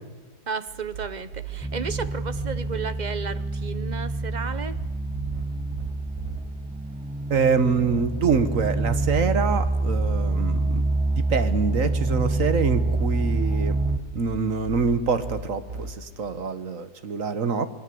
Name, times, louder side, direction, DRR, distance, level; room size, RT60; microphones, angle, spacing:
voice 1, 0.5-4.8, right 5 dB, 35° right, 13 dB, 0.9 m, -33 dB
sound 1, 0.7-2.6 4.5-6.4 8.3-10.2 12.1-15.9, right 6 dB, 75° right, 3.9 m, -38 dB
sound 2, 1.6-14.0, right 2 dB, 5° right, 1.0 m, -26 dB
voice 2, 7.3-10.8 11.3-13.8 14.1-17.7, right 5 dB, 55° right, 10 dB, 1.7 m, -25 dB
27.0 x 22.0 x 7.8 m, 1.2 s
omnidirectional pair, 1.7 m